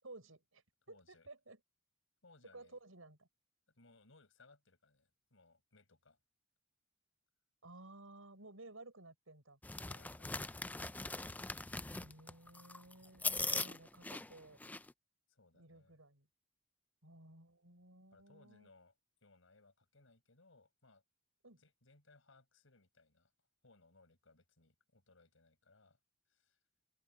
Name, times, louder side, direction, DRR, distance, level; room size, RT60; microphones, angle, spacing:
voice 1, 0.0-1.6 2.5-3.3 7.6-9.6 11.9-14.6 15.5-16.3 17.0-18.7 21.4-21.6, right 2 dB, 80° right, 6.0 m, -56 dB
voice 2, 0.9-1.3 2.2-2.8 3.7-6.2 9.8-10.7 15.3-16.0 18.1-21.0 21.6-23.3 23.6-26.0 26.3-26.6, left 3 dB, 70° left, 5.8 m, -67 dB
sound 1, 9.6-14.9, left 3 dB, 10° left, 0.4 m, -41 dB
open air
head